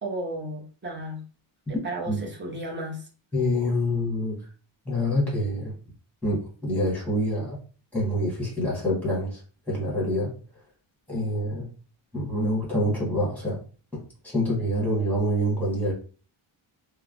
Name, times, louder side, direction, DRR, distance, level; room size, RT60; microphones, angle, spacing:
voice 1, 0.0-1.2 1.8-3.1, right 1 dB, 25° right, 0 dB, 0.7 m, -33 dB
voice 2, 3.3-4.4 4.8-5.7 6.2-7.6 7.9-9.4 9.7-10.3 11.1-11.7 12.1-13.6 13.9-15.9, equal, 5° left, -4 dB, 1.2 m, -26 dB
3.1 x 2.1 x 2.4 m, 0.38 s
wide cardioid pair, 170°, 50 cm